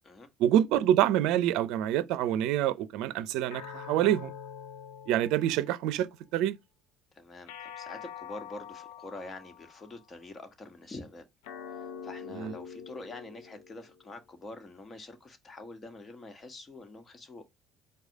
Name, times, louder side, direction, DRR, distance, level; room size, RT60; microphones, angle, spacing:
voice 1, 0.4-4.3 5.1-6.6 12.3-12.5, right 12 dB, 75° right, 0.5 m, -26 dB
sound 1, 3.5-6.1 7.5-10.0 11.4-14.1, left 7 dB, 80° left, 0.6 m, -45 dB
voice 2, 7.1-11.2 11.7-17.5, left 2 dB, 35° left, 1.4 m, -46 dB
4.8 x 2.3 x 4.7 m
hypercardioid pair, 70°, 0 cm